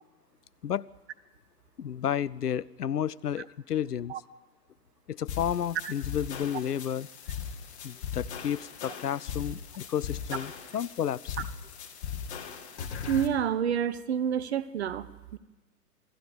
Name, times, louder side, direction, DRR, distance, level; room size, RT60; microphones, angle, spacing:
voice 1, 1.8-4.1 5.1-7.1 7.8-11.4, left 9 dB, 70° left, 23 dB, 0.6 m, -31 dB
sound 1, 5.3-13.3, left 7 dB, 40° left, 2.0 m, -39 dB
voice 2, 13.1-15.4, right 9 dB, 40° right, 16 dB, 1.0 m, -28 dB
27.0 x 19.0 x 5.1 m, 1.2 s
figure-of-eight pair, 125°, 48 cm